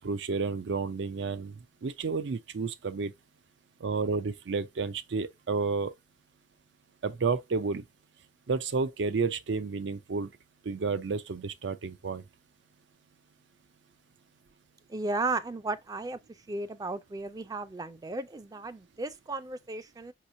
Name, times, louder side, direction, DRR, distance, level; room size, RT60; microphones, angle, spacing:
voice 1, 0.0-3.1 3.8-5.9 7.0-7.8 8.5-10.3 10.6-12.2, right 4 dB, 80° right, 0.5 m, -31 dB
voice 2, 14.9-16.2 16.5-20.1, right 2 dB, 20° right, 0.3 m, -34 dB
5.4 x 2.9 x 2.5 m
head